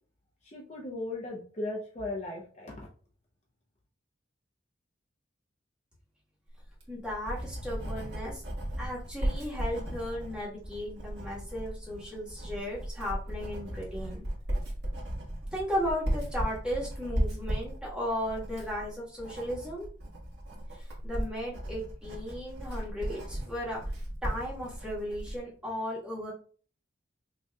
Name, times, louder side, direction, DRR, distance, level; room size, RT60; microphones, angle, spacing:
voice 1, 0.4-2.9, left 2 dB, 35° left, -1 dB, 0.7 m, -37 dB
Writing, 6.6-25.4, right 1 dB, 70° right, 1.5 m, -36 dB
voice 2, 6.9-8.4 8.8-14.2 15.5-19.9 20.7-23.8 24.2-26.3, equal, 5° right, -6 dB, 1.4 m, -35 dB
5.8 x 2.9 x 2.3 m, 0.43 s
head